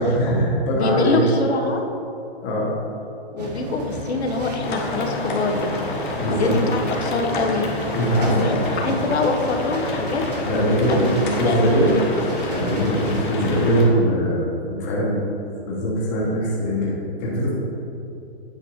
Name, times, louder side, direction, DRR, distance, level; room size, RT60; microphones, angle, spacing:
voice 1, 0.0-1.4 2.4-2.7 6.1-6.6 7.9-8.9 10.4-11.1 11.4-11.9 12.2-15.2 15.6-17.5, equal, 15° left, -5 dB, 0.9 m, -21 dB
voice 2, 0.7-1.8 3.3-7.7 8.3-10.2 10.9-11.7, left 3 dB, 85° left, 3 dB, 1.1 m, -24 dB
sound 1, 3.4-13.7, right 1 dB, 40° right, 1.1 m, -31 dB
sound 2, 4.6-13.9, left 2 dB, 50° left, 1.4 m, -30 dB
9.1 x 5.0 x 4.7 m, 2.8 s
hypercardioid pair, 175°, 32 cm